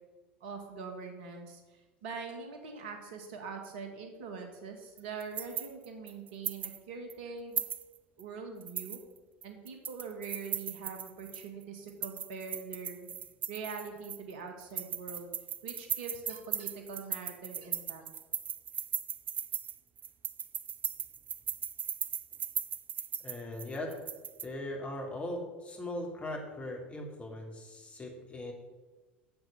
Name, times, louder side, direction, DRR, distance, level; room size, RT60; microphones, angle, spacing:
voice 1, 0.4-7.6 8.2-9.0 9.4-13.1 13.5-15.3 15.6-18.0, right 5 dB, 65° right, 4 dB, 1.8 m, -43 dB
sound 1, 5.0-6.8 7.1-7.2 7.6-8.2 8.6-11.5 11.9-14.3 14.6-24.5, right 8 dB, 30° right, 0.5 m, -37 dB
voice 2, 23.2-23.9 24.4-28.5, left 1 dB, 20° left, 1 dB, 2.8 m, -39 dB
8.0 x 7.7 x 6.9 m, 1.2 s
figure-of-eight pair, 70°, 6 cm